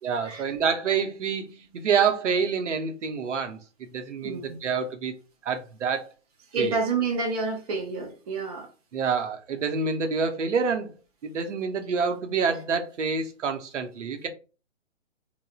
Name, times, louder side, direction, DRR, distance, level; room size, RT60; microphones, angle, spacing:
voice 1, 0.0-5.1 5.4-6.1 6.6-6.8 8.9-10.9 11.2-14.3, right 5 dB, 70° right, 0.7 m, -27 dB
voice 2, 4.2-4.6 6.5-8.7, right 4 dB, 30° right, 0.7 m, -28 dB
3.2 x 2.1 x 2.3 m
figure-of-eight pair, 130°, 38 cm